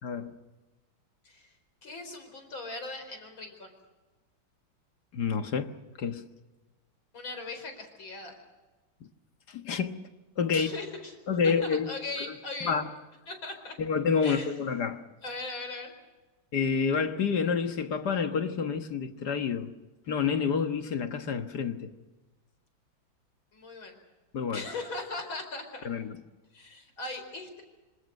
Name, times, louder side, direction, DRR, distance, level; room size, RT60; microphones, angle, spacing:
voice 1, 0.0-0.4 5.1-6.2 9.0-9.1 9.5-10.0 10.4-10.7 11.3-12.3 12.6-12.9 13.8-15.0 16.5-19.7 20.1-21.9 24.3-24.6 25.8-26.2, left 6 dB, 55° left, 1.8 m, -29 dB
voice 2, 1.8-3.7 7.1-8.4 10.5-11.2 11.4-12.8 13.3-13.7 14.2-14.5 15.2-15.9 23.5-24.0 24.5-25.9 26.5-27.6, left 3 dB, 75° left, 5.4 m, -39 dB
27.0 x 26.0 x 6.5 m
omnidirectional pair, 2.2 m